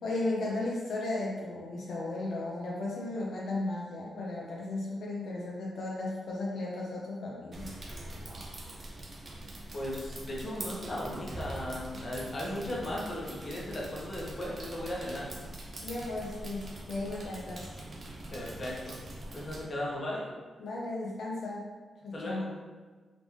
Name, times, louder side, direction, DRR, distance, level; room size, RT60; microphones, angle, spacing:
voice 1, 0.0-7.7 15.8-17.8 20.6-21.6 22.0-22.5, left 2 dB, 65° left, -4 dB, 0.6 m, -35 dB
sound 1, 7.5-19.6, right 1 dB, 35° right, 0.6 m, -43 dB
voice 2, 9.7-15.3 18.3-19.0 19.3-20.2 22.1-22.5, left 1 dB, 35° left, -5 dB, 1.0 m, -36 dB
3.8 x 3.5 x 3.2 m, 1.4 s
wide cardioid pair, 160°, 0 cm